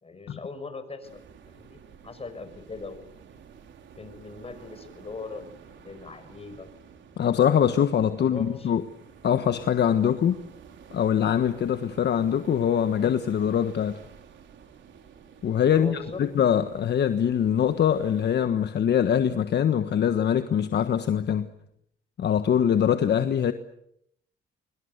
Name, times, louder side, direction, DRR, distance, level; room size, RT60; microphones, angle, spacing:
voice 1, 0.0-1.2 1.5-3.1 4.0-6.7 8.1-8.7 15.7-16.2, left 3 dB, 30° left, 5.8 m, -40 dB
sound 1, 1.0-18.4, right 7 dB, 70° right, 4.2 m, -50 dB
voice 2, 7.2-8.8 9.2-10.4 10.9-14.0 15.4-21.5 22.2-23.5, left 9 dB, 60° left, 1.4 m, -23 dB
24.0 x 24.0 x 8.2 m
cardioid pair, 90°, 20 cm